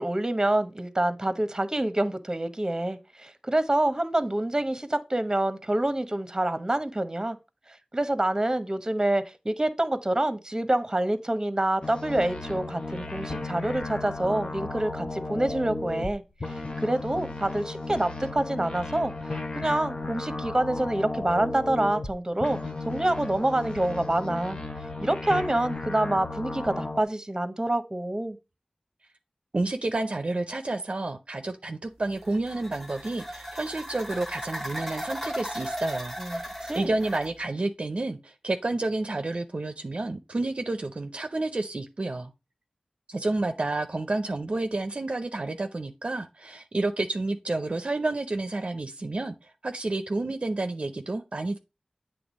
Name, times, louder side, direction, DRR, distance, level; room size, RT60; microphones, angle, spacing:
voice 1, 0.0-7.4 7.9-22.6 22.9-24.6 25.0-28.4 36.2-36.9, right 1 dB, 25° right, 0.9 m, -27 dB
sound 1, 11.8-16.1 16.4-22.1 22.4-27.0, left 2 dB, 45° left, 0.9 m, -35 dB
voice 2, 29.5-36.5 36.7-42.3 43.1-51.6, right 2 dB, 55° right, 0.6 m, -30 dB
sound 2, 32.0-37.3, equal, 10° left, 1.0 m, -37 dB
8.0 x 3.3 x 5.2 m
wide cardioid pair, 50°, 2 cm